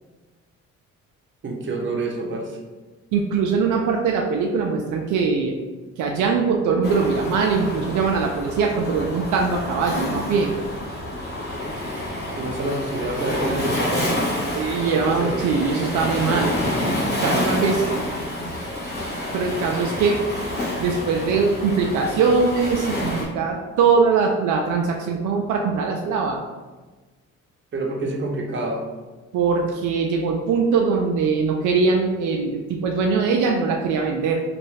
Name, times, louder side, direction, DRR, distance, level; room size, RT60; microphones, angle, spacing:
voice 1, 1.4-2.6 12.3-14.3 14.8-15.5 27.7-28.8, right 2 dB, 40° right, 0 dB, 0.8 m, -27 dB
voice 2, 3.1-5.5 6.0-10.5 14.5-16.5 17.2-18.0 19.3-20.2 20.8-26.4 29.3-34.4, right 5 dB, 80° right, 1 dB, 0.5 m, -21 dB
Waves surf, 6.8-23.2, left 1 dB, 35° left, 1.5 m, -28 dB
3.1 x 2.5 x 3.2 m, 1.3 s
cardioid pair, 90°, 30 cm